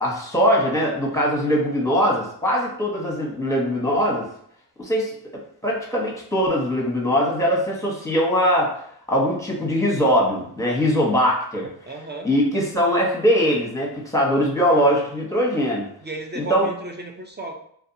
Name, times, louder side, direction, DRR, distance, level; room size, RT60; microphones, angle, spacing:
voice 1, 0.0-4.3 4.8-5.1 5.6-8.8 9.1-11.7 12.2-15.9 16.4-16.7, equal, 5° left, -2 dB, 1.0 m, -21 dB
voice 2, 11.9-12.3 16.0-17.5, right 2 dB, 25° right, 2 dB, 0.4 m, -34 dB
2.6 x 2.4 x 2.6 m, 0.67 s
cardioid pair, 50°, 49 cm